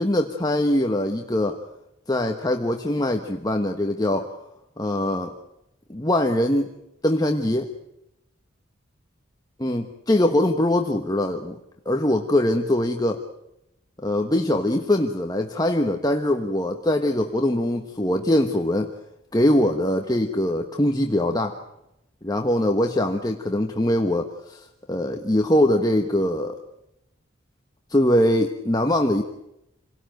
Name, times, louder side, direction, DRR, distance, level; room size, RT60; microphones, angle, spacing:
voice 1, 0.0-1.6 2.1-4.3 4.8-5.3 5.9-6.7 7.0-7.7 9.6-11.6 11.8-13.2 14.0-18.9 19.3-21.6 22.2-26.6 27.9-29.2, left 1 dB, 20° left, 4 dB, 1.2 m, -22 dB
28.0 x 18.0 x 9.1 m, 0.88 s
head